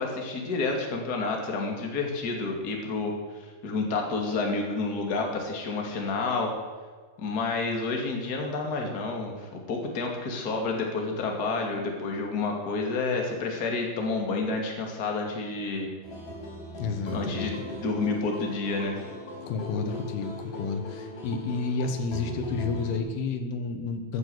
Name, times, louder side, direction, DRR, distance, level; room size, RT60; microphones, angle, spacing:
voice 1, 0.0-6.5 7.2-15.9 17.1-19.0, left 3 dB, 30° left, 2 dB, 2.3 m, -29 dB
sound 1, 16.0-23.0, left 1 dB, 55° left, 5.7 m, -39 dB
voice 2, 16.8-17.5 19.5-24.2, left 4 dB, 80° left, 7 dB, 3.2 m, -30 dB
14.5 x 9.6 x 8.0 m, 1.5 s
omnidirectional pair, 4.4 m